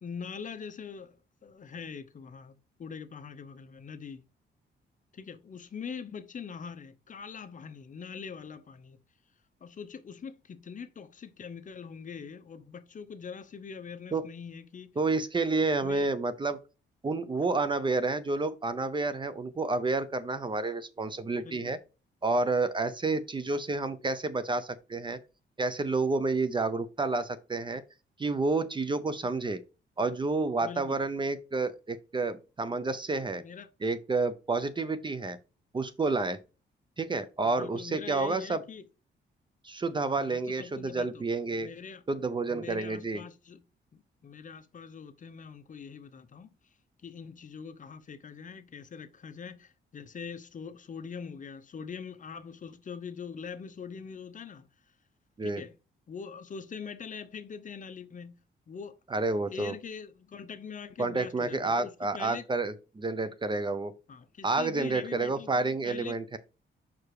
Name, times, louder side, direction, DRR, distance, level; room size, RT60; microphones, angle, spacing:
voice 1, 0.0-4.2 5.1-9.0 9.6-14.9 15.6-16.1 21.4-21.7 30.6-31.0 33.4-33.7 37.4-38.8 40.2-41.2 41.5-42.0 42.5-43.6 43.9-46.5 47.0-54.7 55.4-55.7 56.1-58.4 58.7-59.0 59.5-62.5 64.1-66.2, left 6 dB, 40° left, 0.8 m, -43 dB
voice 2, 15.0-16.6 17.0-21.8 22.2-25.2 25.6-27.8 28.2-29.6 30.0-33.4 33.8-35.4 35.7-36.4 37.0-38.6 39.6-41.7 42.1-43.2 55.4-55.6 59.1-59.7 61.0-63.9 64.4-66.4, right 3 dB, 25° right, 0.6 m, -30 dB
5.9 x 4.8 x 4.8 m
cardioid pair, 125°, 19 cm